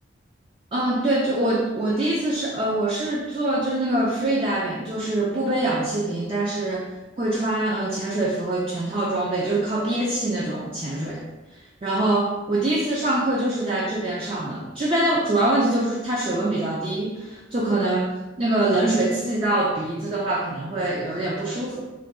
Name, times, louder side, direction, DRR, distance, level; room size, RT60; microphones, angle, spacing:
voice 1, 0.7-11.2 11.5-18.1 18.4-21.8, right 1 dB, 30° right, -4 dB, 0.4 m, -24 dB
3.7 x 2.2 x 3.5 m, 1.1 s
head